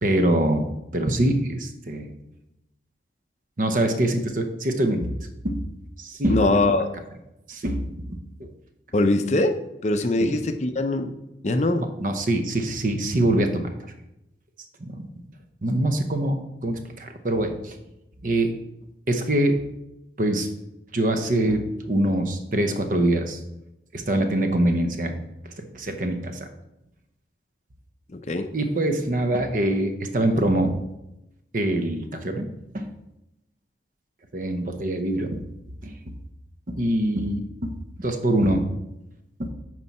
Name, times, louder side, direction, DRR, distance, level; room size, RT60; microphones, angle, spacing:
voice 1, 0.0-0.7 0.9-2.1 3.6-5.1 5.4-5.6 6.0-6.6 7.5-8.5 10.2-10.3 12.0-13.7 14.8-15.1 15.6-17.8 18.2-18.6 19.1-19.6 20.2-20.5 20.9-23.4 23.9-26.5 28.5-30.9 31.5-32.5 32.7-32.9 34.3-35.4 35.8-36.0 36.7-37.7 38.0-38.6 39.4-39.5, right 1 dB, 45° right, 6 dB, 0.8 m, -24 dB
voice 2, 6.3-6.9 8.9-9.5 9.8-11.1 11.4-11.8 28.1-28.5, left 2 dB, 35° left, 8 dB, 0.5 m, -22 dB
9.6 x 4.7 x 4.2 m, 0.90 s
head